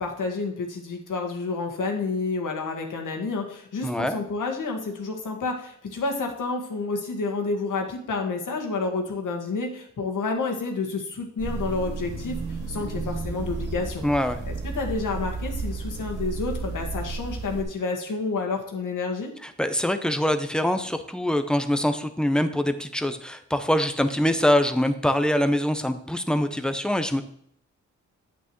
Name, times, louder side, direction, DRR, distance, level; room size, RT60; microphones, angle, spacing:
voice 1, 0.0-12.4 12.7-14.0 14.5-19.3, left 3 dB, 80° left, 2 dB, 1.8 m, -29 dB
voice 2, 3.8-4.2 14.0-14.4 19.4-27.2, left 1 dB, 5° left, 8 dB, 0.8 m, -24 dB
sound 1, 11.4-17.6, right 4 dB, 85° right, 3.5 m, -32 dB
8.8 x 8.3 x 3.1 m, 0.68 s
cardioid pair, 80°, 31 cm